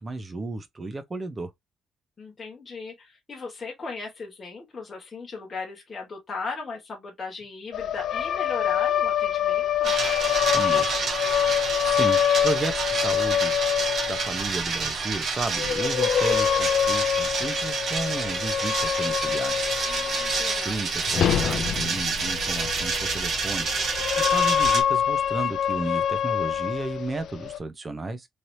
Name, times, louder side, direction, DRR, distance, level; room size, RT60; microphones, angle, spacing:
voice 1, 0.0-1.5 10.5-11.1 11.8-19.7 20.6-23.7 24.2-28.3, right 2 dB, 20° right, 0.6 m, -33 dB
voice 2, 2.2-10.0 19.9-20.8, left 4 dB, 25° left, 1.3 m, -37 dB
sound 1, 7.7-14.4 15.6-20.7 21.0-27.6, left 9 dB, 60° left, 0.3 m, -25 dB
sound 2, 9.8-24.8, right 4 dB, 50° right, 1.0 m, -28 dB
3.2 x 2.8 x 2.7 m
cardioid pair, 155°, 0 cm